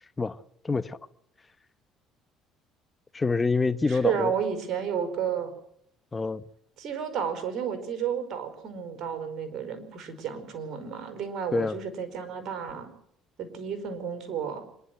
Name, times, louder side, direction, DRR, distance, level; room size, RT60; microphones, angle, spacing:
voice 1, 0.6-1.0 3.1-4.3 6.1-6.4 11.5-11.8, left 4 dB, 25° left, 1.0 m, -26 dB
voice 2, 3.9-5.5 6.8-12.9 13.4-14.7, right 7 dB, 55° right, 4.8 m, -32 dB
26.0 x 11.0 x 9.3 m
supercardioid pair, 85°, 0 cm